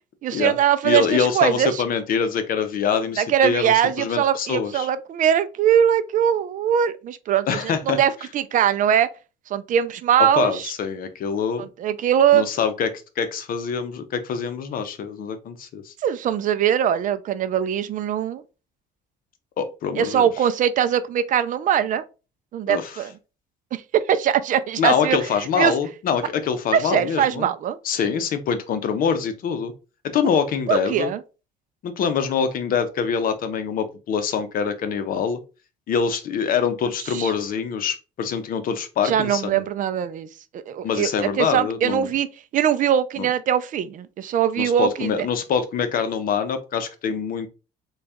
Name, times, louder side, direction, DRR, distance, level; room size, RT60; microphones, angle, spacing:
voice 1, 0.2-1.8 3.2-7.5 7.9-9.1 9.5-10.7 11.6-12.5 16.0-18.4 20.0-22.0 22.5-23.1 23.7-25.2 25.6-25.7 26.7-27.8 30.2-30.3 30.7-31.2 37.1-37.3 39.0-40.3 40.5-42.3 42.5-45.3, right 9 dB, 50° right, 0.4 m, -21 dB
voice 2, 0.8-4.9 7.5-8.0 10.4-11.7 12.3-12.9 13.2-15.9 19.6-20.3 22.7-22.9 24.8-27.5 27.8-29.7 30.0-31.1 31.8-35.4 35.9-39.6 40.8-42.1 43.2-43.3 44.6-47.5, left 6 dB, 55° left, 0.7 m, -24 dB
3.9 x 2.3 x 3.4 m
cardioid pair, 110°, 17 cm